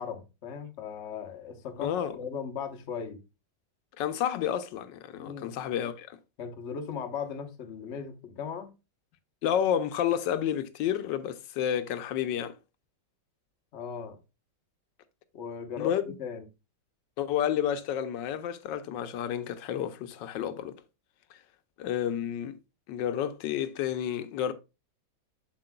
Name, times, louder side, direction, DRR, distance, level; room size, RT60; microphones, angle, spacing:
voice 1, 0.0-3.2 5.2-5.5 6.4-8.7 13.7-14.2 15.3-16.5, left 7 dB, 45° left, 1.1 m, -38 dB
voice 2, 1.8-2.1 4.0-6.2 9.4-12.5 15.8-16.0 17.2-20.7 21.8-22.6 22.9-24.5, left 9 dB, 90° left, 1.3 m, -30 dB
7.5 x 6.9 x 2.2 m
omnidirectional pair, 1.9 m